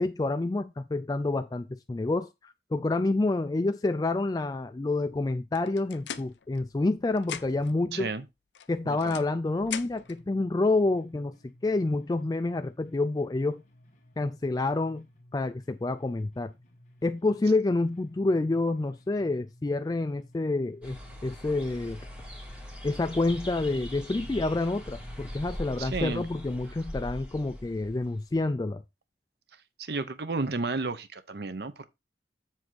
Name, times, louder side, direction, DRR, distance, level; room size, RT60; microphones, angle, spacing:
voice 1, 0.0-8.1 8.7-13.6 14.2-15.0 15.3-16.5 17.0-22.0 22.8-28.8, left 2 dB, 20° left, 0.3 m, -28 dB
sound 1, 5.5-6.9 7.2-7.8 8.5-10.2, left 9 dB, 85° left, 0.6 m, -41 dB
voice 2, 7.9-8.2 8.8-9.1 25.8-26.2 29.8-31.8, right 3 dB, 65° right, 0.7 m, -32 dB
sound 2, 9.9-25.9, left 1 dB, 45° left, 1.7 m, -58 dB
sound 3, 20.8-28.5, equal, 5° right, 2.2 m, -41 dB
7.5 x 3.5 x 6.2 m
head